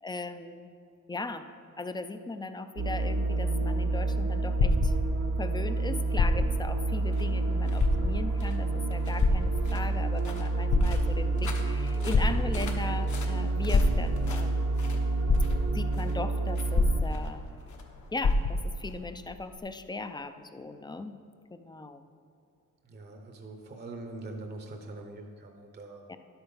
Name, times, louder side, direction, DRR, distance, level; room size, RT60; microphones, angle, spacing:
voice 1, 0.0-0.7 1.1-1.5 1.8-4.9 5.4-14.7 15.7-17.4 18.1-21.1 21.5-22.1 26.1-26.2, left 3 dB, 15° left, 9 dB, 0.4 m, -38 dB
sound 1, 2.8-17.0, right 2 dB, 85° right, 1.3 m, -29 dB
sound 2, 3.5-5.5 6.1-6.7 7.2-7.3 7.7-8.4 9.2-10.0 10.5-11.4 12.1-12.9 13.7-14.4 14.9-15.0 15.3-16.0 16.7-17.6 17.8-17.9 18.2-18.8 19.6-19.7, left 3 dB, 45° left, 0.7 m, -26 dB
sound 3, 6.3-19.6, left 4 dB, 65° left, 1.2 m, -48 dB
voice 2, 22.8-26.0, right 2 dB, 30° right, 4 dB, 0.7 m, -43 dB
11.5 x 8.0 x 5.4 m, 2.5 s
wide cardioid pair, 165°, 32 cm